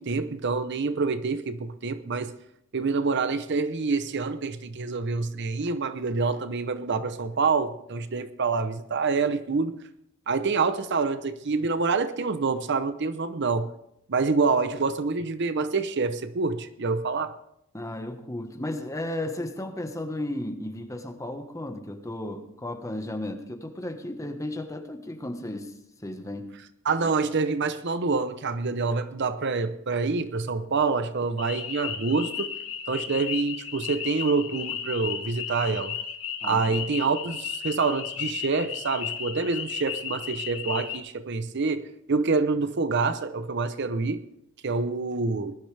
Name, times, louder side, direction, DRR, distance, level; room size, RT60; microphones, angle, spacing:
voice 1, 0.0-2.3 2.7-9.8 10.3-13.7 14.1-17.3 26.8-32.6 32.9-36.0 36.4-44.2 44.6-45.6, right 4 dB, 55° right, 0.7 m, -27 dB
voice 2, 17.7-25.7 26.0-26.5 36.4-36.8, left 1 dB, 15° left, 1.3 m, -34 dB
sound 1, 31.4-41.0, left 8 dB, 75° left, 1.2 m, -34 dB
19.5 x 12.0 x 3.4 m
head